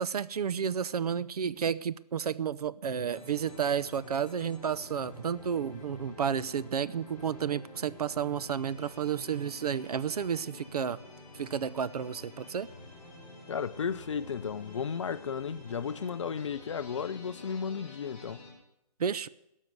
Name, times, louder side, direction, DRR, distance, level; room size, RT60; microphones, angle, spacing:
voice 1, 0.0-11.0 11.4-12.7 19.0-19.3, right 7 dB, 70° right, 0.6 m, -31 dB
sound 1, 3.1-18.5, left 2 dB, 5° left, 4.9 m, -49 dB
voice 2, 13.5-18.4, left 6 dB, 45° left, 0.5 m, -34 dB
17.0 x 6.4 x 9.2 m
hypercardioid pair, 165°, 21 cm